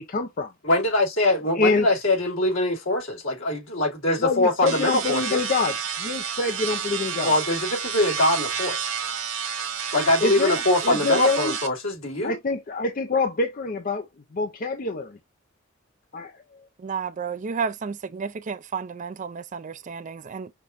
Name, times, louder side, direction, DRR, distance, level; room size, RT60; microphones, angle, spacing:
voice 1, 0.1-0.5 1.6-1.9 4.2-7.3 10.2-10.6 10.8-11.5 12.2-14.1 14.3-15.2 16.1-16.3, left 3 dB, 40° left, 0.5 m, -25 dB
voice 2, 0.6-5.5 7.2-8.9 9.9-12.4, left 1 dB, 75° left, 2.7 m, -23 dB
sound 1, 4.7-11.7, right 7 dB, 70° right, 1.6 m, -30 dB
voice 3, 16.8-20.5, right 5 dB, 35° right, 0.4 m, -32 dB
5.9 x 2.9 x 2.5 m
head